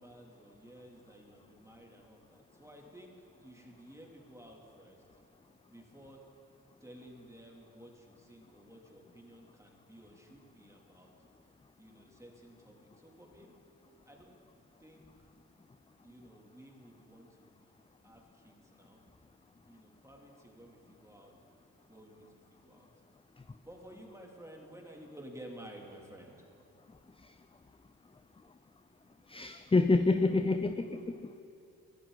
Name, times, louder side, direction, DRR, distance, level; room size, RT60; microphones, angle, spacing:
voice 1, 0.0-3.1 3.4-5.0 5.7-6.2 6.8-11.1 11.8-13.5 14.1-14.4 14.8-15.1 16.0-17.6 18.0-19.0 19.7-21.3 21.9-22.8 23.6-26.4, right 1 dB, 5° right, -1 dB, 3.0 m, -53 dB
voice 2, 29.3-31.4, left 3 dB, 15° left, 10 dB, 0.6 m, -28 dB
18.5 x 12.0 x 4.1 m, 2.7 s
supercardioid pair, 45°, 39 cm